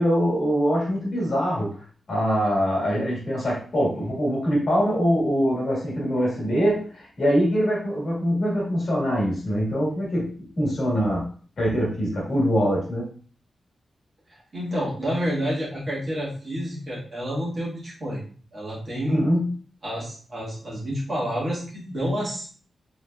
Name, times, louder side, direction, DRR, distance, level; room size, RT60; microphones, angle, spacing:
voice 1, 0.0-1.7 2.1-11.2 11.6-13.1 19.1-19.5, equal, 55° left, -4 dB, 1.4 m, -23 dB
voice 2, 14.5-18.2 18.5-19.3 19.8-22.5, equal, 30° right, -6 dB, 1.3 m, -29 dB
3.1 x 3.0 x 2.2 m, 0.42 s
wide cardioid pair, 155°, 0 cm